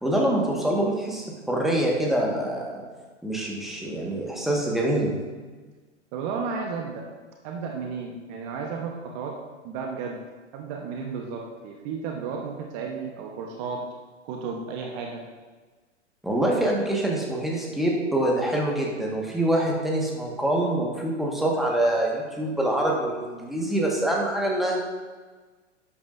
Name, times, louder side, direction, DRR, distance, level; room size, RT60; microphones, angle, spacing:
voice 1, 0.0-2.8 3.2-5.1 16.2-24.8, right 1 dB, ahead, -2 dB, 1.7 m, -25 dB
voice 2, 6.1-7.1 7.4-9.4 9.6-10.2 10.5-13.8 14.2-15.2, right 5 dB, 35° right, 2 dB, 1.1 m, -33 dB
12.0 x 8.5 x 2.7 m, 1.4 s
figure-of-eight pair, 105°, 36 cm